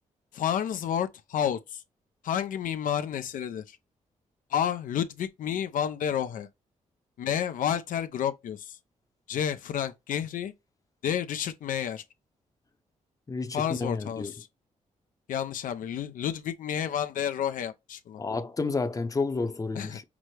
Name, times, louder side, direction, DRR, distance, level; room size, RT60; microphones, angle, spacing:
voice 1, 0.3-1.8 2.2-3.8 4.5-6.5 7.2-8.8 9.3-10.5 11.0-12.0 13.5-14.5 15.3-18.2 19.7-20.0, left 9 dB, 80° left, 0.5 m, -30 dB
voice 2, 13.3-14.3 18.2-20.0, left 3 dB, 25° left, 0.7 m, -30 dB
6.0 x 2.0 x 3.2 m
cardioid pair, 85°, 14 cm